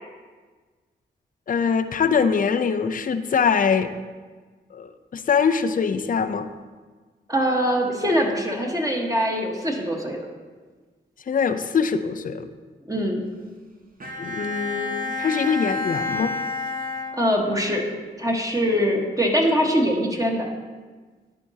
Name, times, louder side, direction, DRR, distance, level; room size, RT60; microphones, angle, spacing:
voice 1, 1.5-3.9 4.7-6.5 11.3-12.5 14.2-16.3, left 6 dB, 40° left, 10 dB, 0.5 m, -23 dB
voice 2, 7.3-10.2 12.9-13.2 17.1-17.8 18.2-20.5, equal, 15° right, 0 dB, 1.3 m, -23 dB
Bowed string instrument, 14.0-17.7, left 3 dB, 45° right, 1.1 m, -30 dB
11.0 x 4.5 x 2.8 m, 1.4 s
supercardioid pair, 40°, 21 cm